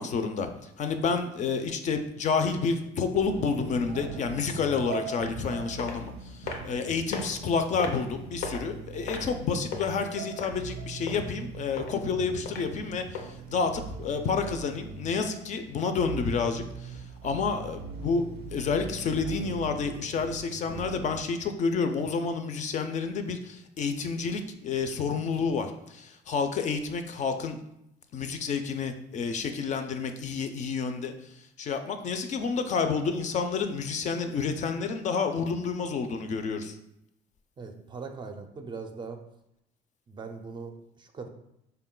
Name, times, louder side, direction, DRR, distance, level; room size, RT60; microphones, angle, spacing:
voice 1, 0.0-27.6 28.1-36.8, left 5 dB, 45° left, 7 dB, 0.4 m, -29 dB
sound 1, 3.2-21.2, right 5 dB, 90° right, 0.4 m, -41 dB
sound 2, 5.2-5.5 5.8-6.0 6.5-6.8 7.1-7.2 7.8-8.1 8.4-8.7 9.1-9.9 10.4-10.7 11.1-11.2 11.8-11.9 12.5-12.6 13.1-13.3 13.8-13.9, left 5 dB, 90° left, 0.6 m, -35 dB
voice 2, 37.6-39.2 40.1-41.3, right 4 dB, 30° right, 5 dB, 0.4 m, -40 dB
3.8 x 2.2 x 3.7 m, 0.82 s
cardioid pair, 110°, 17 cm